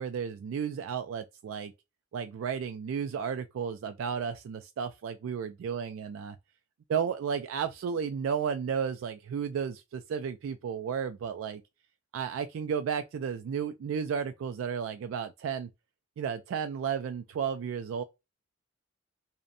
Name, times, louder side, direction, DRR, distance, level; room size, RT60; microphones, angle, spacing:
voice 1, 0.0-1.7 2.1-6.4 6.9-11.6 12.1-15.7 16.2-18.0, right 7 dB, 80° right, 0.3 m, -33 dB
2.6 x 2.1 x 2.5 m
head